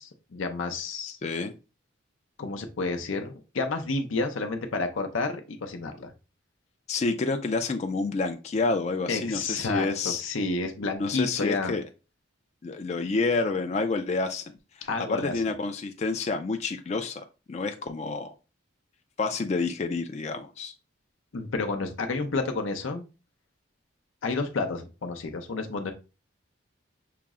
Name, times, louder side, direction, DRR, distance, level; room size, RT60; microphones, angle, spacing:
voice 1, 0.0-1.2 2.4-6.1 9.1-11.7 14.9-15.3 21.3-23.1 24.2-25.9, left 3 dB, 80° left, 5 dB, 0.6 m, -30 dB
voice 2, 1.2-1.5 6.9-10.2 11.0-11.8 12.6-14.4 14.8-18.3 19.2-20.7, left 3 dB, 35° left, 7 dB, 0.3 m, -29 dB
5.7 x 2.0 x 3.6 m, 0.31 s
head